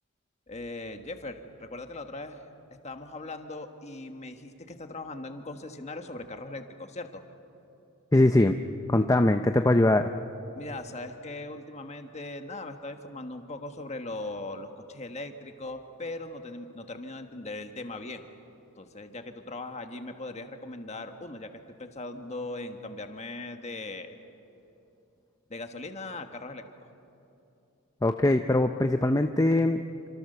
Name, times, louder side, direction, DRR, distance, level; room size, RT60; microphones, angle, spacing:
voice 1, 0.5-2.4 2.8-7.2 10.6-18.3 18.8-24.1 25.5-26.7, left 2 dB, 30° left, 6 dB, 1.5 m, -39 dB
voice 2, 8.1-8.6 8.9-10.1 28.0-29.9, left 1 dB, 15° left, 6 dB, 0.5 m, -22 dB
27.5 x 26.0 x 6.8 m, 2.9 s
head